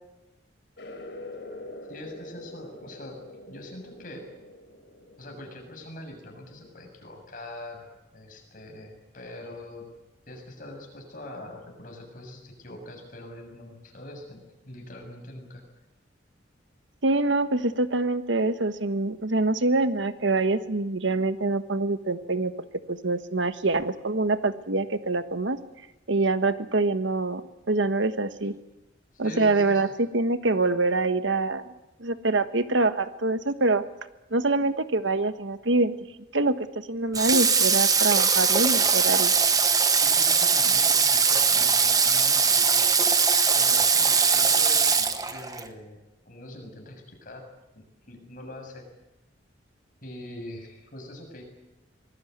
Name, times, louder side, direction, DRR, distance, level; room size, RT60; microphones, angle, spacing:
sound 1, 0.8-6.9, left 1 dB, 60° left, 4.3 m, -45 dB
voice 1, 1.9-3.2 3.5-4.3 5.2-9.9 10.3-15.6 28.4-28.5 29.1-29.8 40.0-42.9 43.5-47.5 47.8-48.9 50.0-51.4, left 1 dB, 45° left, 3 dB, 7.1 m, -43 dB
voice 2, 17.0-22.5 22.9-25.6 26.1-27.4 27.7-28.5 29.2-31.7 32.0-33.8 34.3-35.9 36.3-36.5 36.9-39.3, right 2 dB, 80° right, 11 dB, 1.4 m, -25 dB
Water / Water tap faucet, 37.1-45.7, right 5 dB, 20° right, 1.2 m, -21 dB
24.5 x 19.5 x 9.5 m, 0.97 s
head